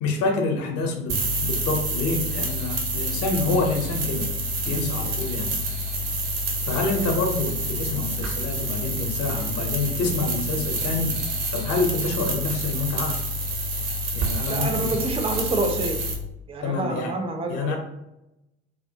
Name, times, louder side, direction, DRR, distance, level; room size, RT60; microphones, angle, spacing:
voice 1, 0.0-4.3 4.7-5.6 6.6-11.2 11.5-13.1 14.1-15.0 16.6-17.2 17.5-17.8, left 3 dB, 45° left, 3 dB, 0.6 m, -27 dB
sound 1, 1.1-16.1, right 1 dB, 70° right, 0.6 m, -28 dB
voice 2, 14.5-16.0 16.5-17.8, right 2 dB, 15° right, 4 dB, 0.4 m, -27 dB
2.3 x 2.1 x 2.6 m, 0.90 s
figure-of-eight pair, 55°, 34 cm